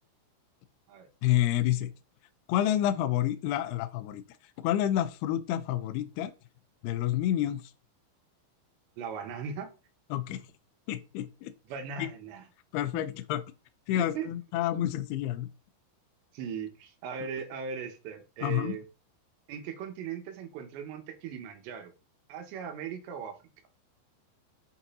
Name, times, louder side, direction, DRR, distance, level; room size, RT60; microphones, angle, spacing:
voice 1, 1.2-1.9 2.5-4.2 4.6-6.3 6.8-7.6 10.1-10.4 10.9-11.5 12.0-12.1 12.7-13.4 13.9-15.5 18.4-18.8, left 12 dB, 80° left, 2.3 m, -29 dB
voice 2, 9.0-9.7 11.7-12.5 12.9-13.0 13.9-14.3 16.3-18.8 19.5-21.9 22.3-23.4, right 7 dB, 75° right, 3.4 m, -38 dB
8.6 x 5.3 x 2.8 m
omnidirectional pair, 5.4 m